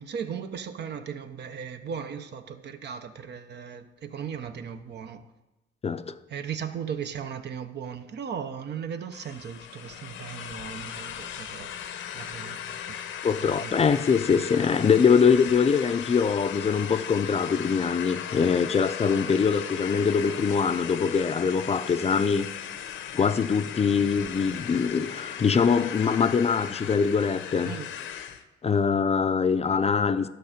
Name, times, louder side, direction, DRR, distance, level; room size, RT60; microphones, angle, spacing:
voice 1, 0.0-5.2 6.3-11.7 12.1-13.0 13.4-13.8 27.6-27.9, right 7 dB, 60° right, 0.8 m, -37 dB
voice 2, 5.8-6.2 13.2-22.5 23.1-27.7 28.6-30.3, left 6 dB, 30° left, 0.5 m, -23 dB
sound 1, 9.1-28.4, left 9 dB, 80° left, 0.8 m, -37 dB
11.5 x 6.3 x 5.0 m
cardioid pair, 90°, 20 cm